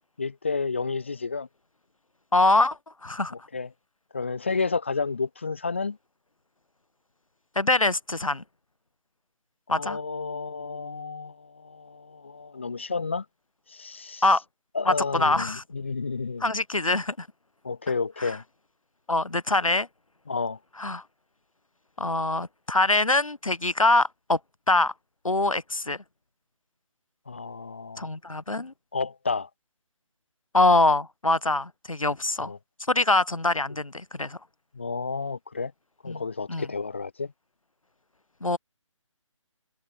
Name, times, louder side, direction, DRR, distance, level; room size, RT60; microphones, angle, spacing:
voice 1, 0.2-1.5 3.3-3.7 4.1-6.0 9.7-13.2 13.7-14.2 14.7-16.5 17.6-18.4 20.3-20.6 27.3-28.1 28.9-29.5 32.4-32.6 34.7-35.7 36.0-37.3, left 4 dB, 25° left, 0.4 m, -31 dB
voice 2, 2.3-3.3 7.6-8.4 9.7-10.0 14.2-14.4 14.8-15.6 16.4-17.3 18.2-18.4 19.1-19.9 20.8-21.0 22.0-24.4 24.7-24.9 25.2-26.0 28.0-28.7 30.5-32.5 32.9-34.4 36.1-36.2 36.5-36.7 38.4-38.6, left 2 dB, 80° left, 1.0 m, -24 dB
figure-of-eight pair, 150°, 17 cm